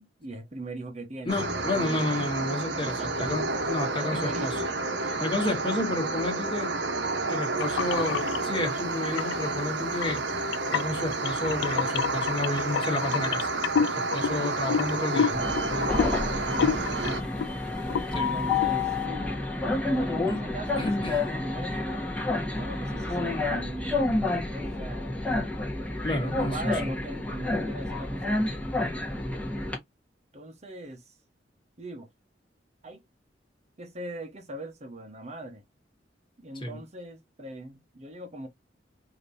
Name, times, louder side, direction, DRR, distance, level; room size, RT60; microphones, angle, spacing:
voice 1, 0.2-2.1 2.8-3.4 4.0-4.7 16.1-17.4 18.1-19.5 20.0-22.1 22.5-25.3 26.2-28.7 30.3-31.2 31.8-32.1 32.8-33.0 33.8-35.6 36.4-38.5, right 1 dB, 40° right, 1.0 m, -40 dB
voice 2, 1.2-4.6 5.2-6.7 7.3-10.2 10.7-13.5 14.0-15.6 18.1-18.4 20.3-20.4 20.8-21.2 26.0-26.8 36.6-36.8, left 2 dB, 30° left, 1.6 m, -31 dB
sound 1, 1.3-17.2, right 3 dB, 70° right, 1.0 m, -30 dB
sound 2, 7.6-8.4 9.0-9.5 10.0-17.5 17.8-18.1 18.5-18.7, left 7 dB, 85° left, 0.3 m, -29 dB
Train, 15.3-29.8, left 2 dB, 5° left, 1.4 m, -29 dB
5.1 x 2.9 x 2.6 m
head